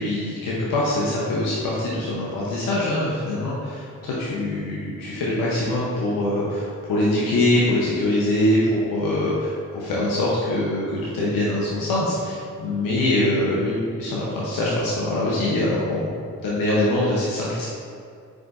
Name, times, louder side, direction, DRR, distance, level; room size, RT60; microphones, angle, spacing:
voice 1, 0.0-16.1 16.4-17.7, left 1 dB, 80° left, -6 dB, 0.8 m, -23 dB
4.9 x 3.8 x 2.5 m, 2.4 s
cardioid pair, 70°, 34 cm